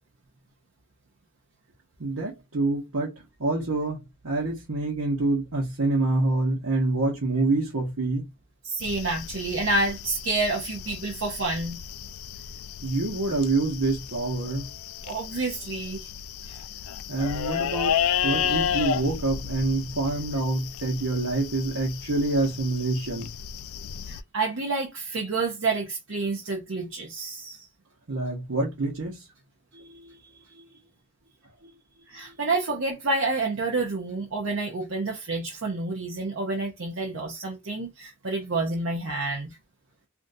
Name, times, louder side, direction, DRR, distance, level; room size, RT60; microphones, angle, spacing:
voice 1, 2.0-8.2 12.8-14.7 17.1-17.9 18.2-23.3 28.1-29.2 29.7-30.2 30.5-30.7 31.6-31.7, right 2 dB, 85° right, 1.0 m, -27 dB
voice 2, 8.6-11.8 15.0-16.1 16.4-16.6 24.1-27.7 32.1-39.6, right 3 dB, 60° right, 0.6 m, -29 dB
sound 1, 8.8-24.2, left 8 dB, 85° left, 0.3 m, -33 dB
3.5 x 2.5 x 2.6 m
head